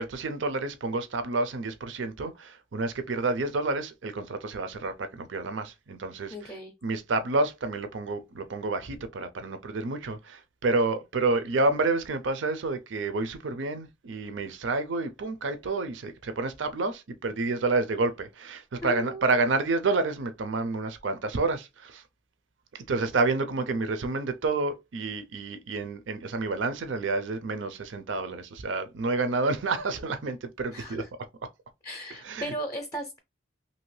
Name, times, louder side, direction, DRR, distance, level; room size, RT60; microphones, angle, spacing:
voice 1, 0.0-6.5 6.8-22.0 22.7-31.0 32.2-32.5, right 3 dB, 85° right, 0.5 m, -29 dB
voice 2, 6.3-6.7 18.8-19.3 30.7-31.1 31.8-33.2, equal, 20° left, 0.5 m, -36 dB
2.8 x 2.7 x 3.1 m
head